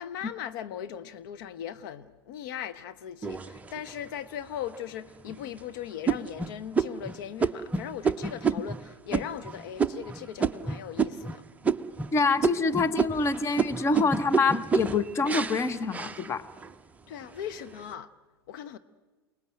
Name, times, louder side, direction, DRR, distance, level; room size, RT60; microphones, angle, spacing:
voice 1, 0.0-11.4 17.1-18.1 18.5-18.8, left 9 dB, 50° left, 1.0 m, -38 dB
sound 1, 3.2-4.1 4.7-4.8 5.3-5.6 6.1-11.4 11.6-12.1 12.4-16.7 17.2-17.8, right 5 dB, 10° right, 0.7 m, -29 dB
voice 2, 12.1-16.4, left 4 dB, 20° left, 1.1 m, -26 dB
29.0 x 19.0 x 7.7 m
figure-of-eight pair, 90°, 14 cm